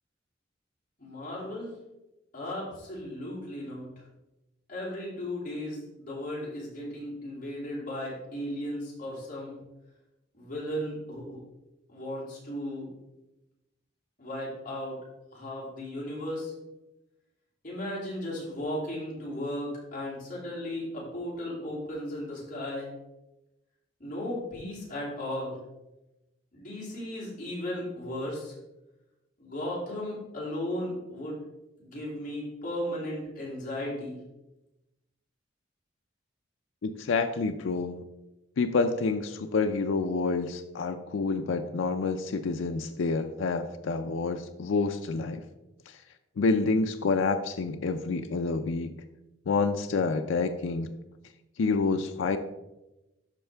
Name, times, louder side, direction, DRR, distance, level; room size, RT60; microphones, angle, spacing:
voice 1, 1.0-1.7 2.3-3.9 4.7-9.6 10.3-11.4 11.9-12.9 14.2-15.0 15.3-16.5 17.6-22.9 24.0-25.6 26.5-28.5 29.4-31.4 31.8-34.2, left 1 dB, 45° left, -6 dB, 3.0 m, -35 dB
voice 2, 36.8-38.0 38.6-45.4 45.9-46.0 46.4-49.0 49.5-50.9 51.6-52.4, left 4 dB, 85° left, 7 dB, 0.4 m, -28 dB
12.0 x 4.4 x 3.4 m, 0.97 s
head